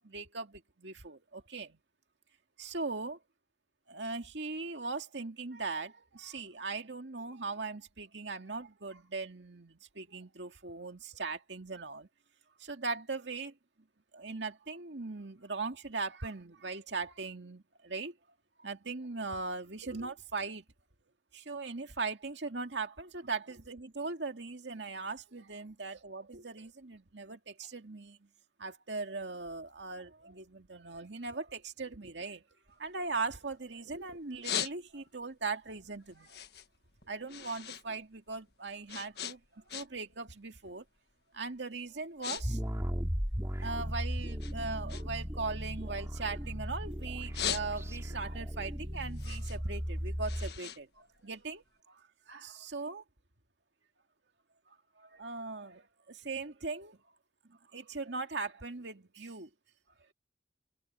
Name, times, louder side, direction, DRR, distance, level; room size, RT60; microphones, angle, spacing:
voice 1, 0.0-1.8 2.6-3.2 3.9-12.1 12.6-13.5 14.1-18.1 18.6-20.6 21.3-28.3 28.6-32.4 32.8-36.4 37.1-40.8 41.3-42.6 43.6-53.0 54.7-57.0 57.4-59.5, right 4 dB, 85° right, 2.2 m, -39 dB
sound 1, 32.7-33.8 34.2-35.2 35.6-37.9 38.1-40.2 40.5-40.8 41.4-41.6 41.9-42.4 42.7-43.9 44.4-46.7 47.1-48.1 48.6-51.7, left 9 dB, 65° left, 1.5 m, -40 dB
sound 2, 42.4-50.5, equal, 15° right, 2.2 m, -36 dB
head